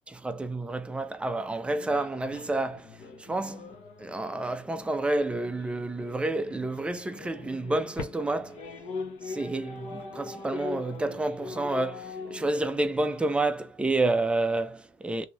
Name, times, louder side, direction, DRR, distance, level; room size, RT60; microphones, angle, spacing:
voice 1, 0.1-2.9 3.2-8.6 9.3-15.3, right 2 dB, 10° right, 0.4 m, -29 dB
sound 1, 1.6-13.2, left 4 dB, 65° left, 0.8 m, -42 dB
3.0 x 2.7 x 2.3 m
cardioid pair, 115°, 12 cm